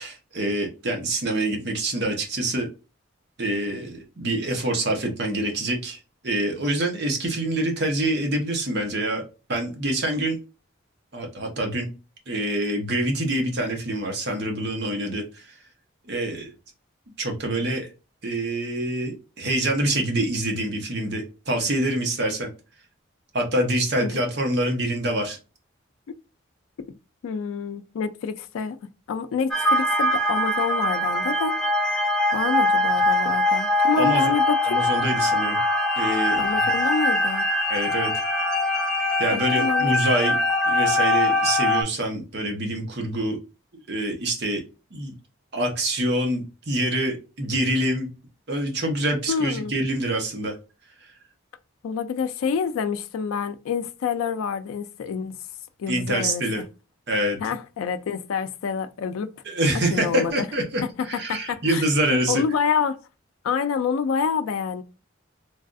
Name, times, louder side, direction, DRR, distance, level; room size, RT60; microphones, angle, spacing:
voice 1, 0.0-2.7 3.4-9.2 9.5-10.4 11.1-11.9 12.3-15.6 16.0-16.5 17.2-17.9 18.2-22.5 23.3-25.4 34.0-34.3 34.6-35.6 36.0-36.7 37.7-38.1 39.2-40.4 40.6-43.4 43.9-44.6 44.9-45.1 45.5-48.1 48.5-50.6 55.9-56.6 57.1-57.4 59.4-62.4, right 1 dB, 50° right, 0.8 m, -26 dB
voice 2, 27.2-28.8 29.1-31.6 32.3-34.8 36.4-37.5 39.3-39.9 49.3-49.7 51.8-55.4 55.8-56.6 57.4-59.3 59.9-60.3 60.8-61.8 62.3-63.0 63.4-64.8, left 6 dB, 85° left, 0.3 m, -27 dB
sound 1, 29.5-41.8, left 1 dB, 5° left, 0.4 m, -22 dB
3.3 x 2.3 x 2.5 m
head